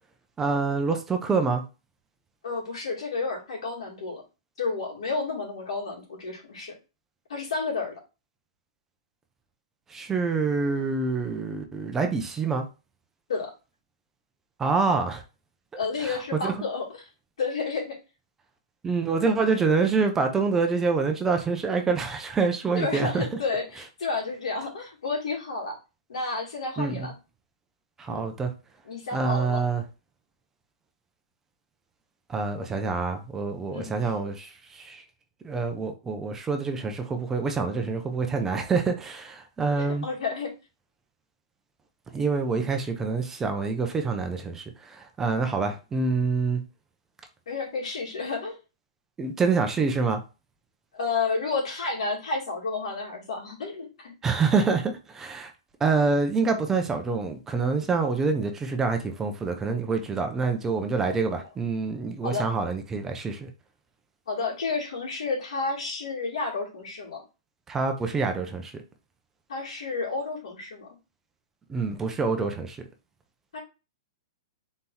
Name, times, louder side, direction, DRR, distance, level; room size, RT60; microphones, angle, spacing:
voice 1, 0.4-1.6 9.9-12.7 14.6-15.2 16.0-16.5 18.8-23.3 26.8-27.1 28.0-28.5 29.1-29.8 32.3-35.0 35.4-40.1 42.1-46.6 49.2-50.2 54.2-55.5 55.8-63.5 67.7-68.8 71.7-72.8, right 4 dB, 10° right, 0.5 m, -26 dB
voice 2, 2.4-4.2 4.6-6.8 7.3-7.9 13.3-13.5 15.8-17.1 17.4-18.0 22.8-25.8 26.1-27.2 28.1-28.2 28.8-29.6 33.7-34.1 39.8-40.5 47.5-48.6 50.9-54.1 62.2-62.5 64.3-67.2 69.5-70.9 73.5-73.6, left 4 dB, 90° left, 2.4 m, -31 dB
4.0 x 2.9 x 3.8 m
hypercardioid pair, 160°, 3 cm